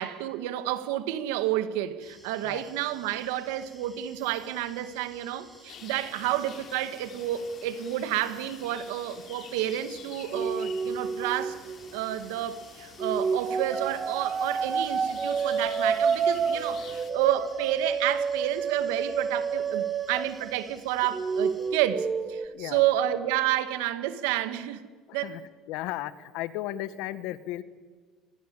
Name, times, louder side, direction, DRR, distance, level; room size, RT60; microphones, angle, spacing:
voice 1, 0.0-11.6 11.9-24.8 25.1-25.4, right 12 dB, 90° right, 11 dB, 2.1 m, -30 dB
sound 1, 2.0-21.7, equal, ahead, 6.8 m, -56 dB
sound 2, 5.7-17.1, left 8 dB, 50° left, 3.0 m, -48 dB
sound 3, 10.3-12.4 13.0-20.7 21.0-22.5, right 5 dB, 25° right, 1.6 m, -29 dB
voice 2, 25.1-25.4 25.7-27.6, left 14 dB, 75° left, 14 dB, 1.6 m, -35 dB
25.5 x 21.0 x 8.8 m, 1.5 s
cardioid pair, 120°, 0 cm